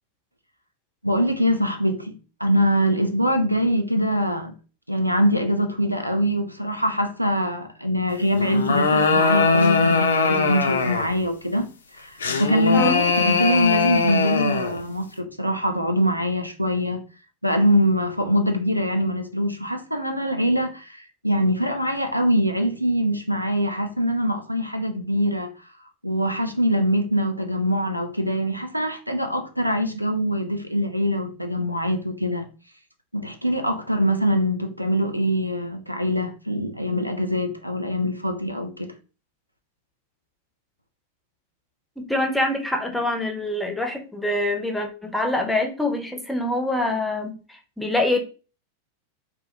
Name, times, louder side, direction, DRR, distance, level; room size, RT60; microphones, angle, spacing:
voice 1, 1.0-4.5 4.9-11.7 11.9-17.0 17.4-25.5 26.0-32.5 33.1-38.9, equal, 90° right, 0.3 m, -23 dB
sound 1, 8.4-11.2 12.2-14.8, left 4 dB, 70° left, 0.3 m, -21 dB
voice 2, 42.1-48.2, left 2 dB, 5° left, 0.5 m, -25 dB
2.2 x 2.1 x 2.6 m
figure-of-eight pair, 90°, 0 cm